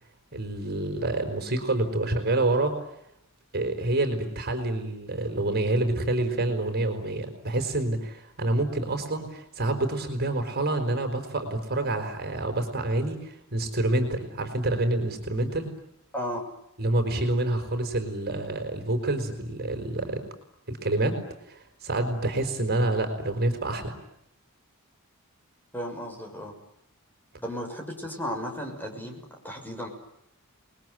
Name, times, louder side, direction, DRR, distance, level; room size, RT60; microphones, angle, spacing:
voice 1, 0.3-2.8 3.5-15.7 16.8-20.2 20.7-21.2 21.5-24.0, right 2 dB, 45° right, 6 dB, 5.0 m, -27 dB
voice 2, 16.1-16.5 25.7-26.5 27.4-29.9, equal, 10° left, 3 dB, 6.5 m, -34 dB
29.0 x 21.5 x 9.4 m, 0.80 s
head